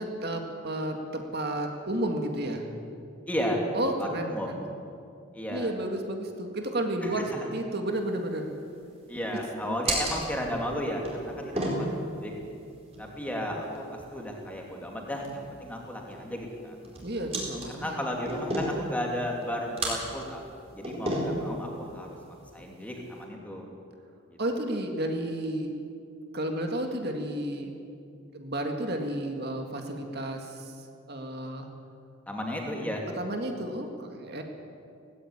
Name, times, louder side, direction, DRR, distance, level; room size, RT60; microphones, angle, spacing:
voice 1, 0.0-2.7 3.7-4.6 5.5-8.5 9.6-9.8 17.0-18.0 24.4-25.7 26.3-27.7 28.3-30.8 31.1-31.7 33.2-34.4, right 1 dB, 45° right, 3 dB, 2.0 m, -32 dB
voice 2, 3.3-3.6 4.0-4.6 5.3-5.7 7.3-7.4 9.1-12.3 13.0-16.9 17.7-20.4 20.7-22.1 22.5-23.7 32.3-33.1, equal, 5° left, 0 dB, 2.8 m, -34 dB
sound 1, 7.9-23.2, right 1 dB, 30° right, 4.4 m, -36 dB
18.0 x 16.5 x 9.8 m, 2.5 s
head